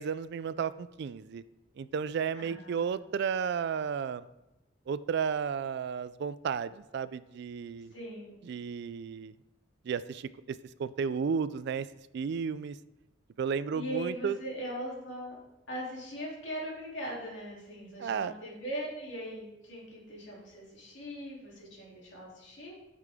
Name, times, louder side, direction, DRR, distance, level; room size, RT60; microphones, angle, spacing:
voice 1, 0.0-1.4 1.8-4.2 4.9-7.9 8.4-9.3 9.9-11.9 12.1-12.8 13.4-14.4 18.0-18.3, right 6 dB, 60° right, 16 dB, 0.3 m, -33 dB
voice 2, 2.4-2.9 7.9-8.5 13.7-15.3 15.7-22.8, equal, 65° left, -4 dB, 2.9 m, -40 dB
9.9 x 6.7 x 3.6 m, 0.93 s
head